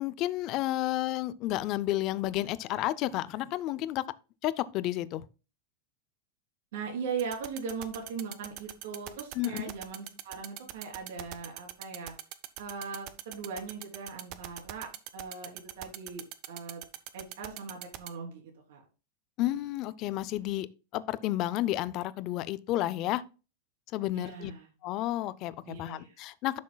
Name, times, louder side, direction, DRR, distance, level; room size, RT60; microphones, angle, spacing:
voice 1, 0.0-4.0 4.4-5.2 9.3-9.6 19.4-20.7 20.9-23.2 23.9-24.5 24.8-26.6, left 15 dB, 30° left, 0.4 m, -31 dB
voice 2, 6.7-12.1 12.6-16.8 17.1-18.4 18.7-18.8 24.1-24.7 25.7-26.1, right 5 dB, 65° right, 3.3 m, -39 dB
sound 1, 7.2-18.1, right 16 dB, 35° right, 0.6 m, -40 dB
11.0 x 6.3 x 2.2 m
supercardioid pair, 170°, 0 cm